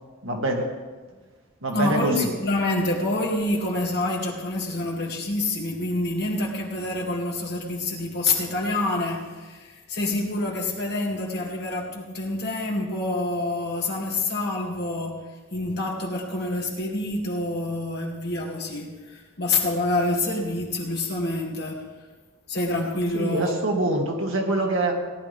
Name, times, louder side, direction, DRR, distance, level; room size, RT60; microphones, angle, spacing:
voice 1, 0.2-0.6 1.6-2.3 23.1-24.9, right 2 dB, 65° right, 1 dB, 1.8 m, -25 dB
voice 2, 1.7-15.2 15.5-21.8 22.5-23.8, left 2 dB, 50° left, -2 dB, 2.4 m, -27 dB
18.0 x 10.5 x 3.5 m, 1.4 s
head